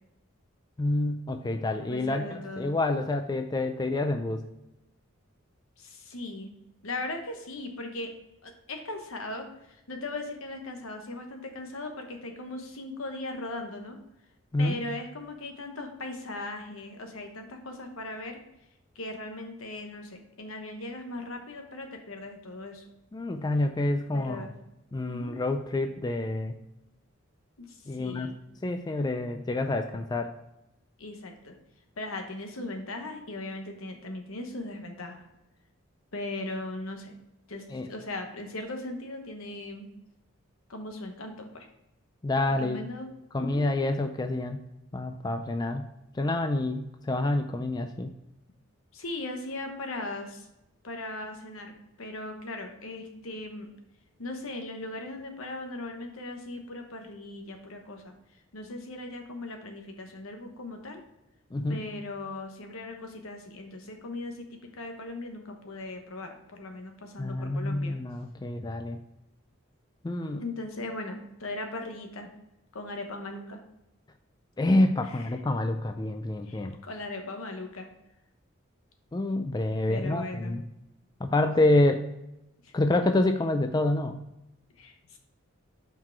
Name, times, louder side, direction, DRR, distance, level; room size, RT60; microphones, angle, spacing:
voice 1, 0.8-4.4 14.5-14.8 23.1-24.5 24.9-26.6 27.9-28.3 28.6-30.3 37.7-37.9 42.2-42.8 43.3-44.6 44.9-45.9 46.1-48.1 61.5-61.8 67.2-69.0 70.0-70.4 74.6-76.8 79.1-80.6 81.2-82.0 82.7-84.2, left 2 dB, 20° left, 6 dB, 0.3 m, -27 dB
voice 2, 1.8-2.7 5.8-6.5 6.8-8.1 8.4-14.0 14.6-18.4 18.9-22.8 24.1-24.5 25.1-25.4 27.6-28.4 31.0-31.6 32.0-35.3 36.1-37.1 37.5-39.9 40.7-41.7 42.5-43.1 43.4-43.6 48.9-50.5 50.8-53.7 54.2-58.1 58.5-61.0 61.7-68.0 70.4-72.3 72.7-73.6 75.1-75.3 76.5-77.9 79.9-80.6 82.6-82.7 84.8-85.2, left 2 dB, 80° left, 4 dB, 1.1 m, -38 dB
5.9 x 4.6 x 4.5 m, 0.89 s
head